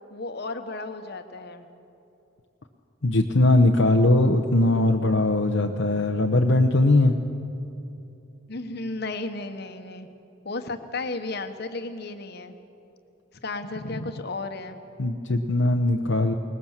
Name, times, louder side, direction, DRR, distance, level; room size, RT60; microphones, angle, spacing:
voice 1, 0.1-1.7 8.5-10.1 10.4-12.5 13.4-14.8, left 3 dB, 55° left, 8 dB, 1.2 m, -34 dB
voice 2, 3.0-7.1 15.0-16.3, left 2 dB, 70° left, 2 dB, 0.9 m, -20 dB
20.5 x 19.5 x 7.4 m, 2.8 s
head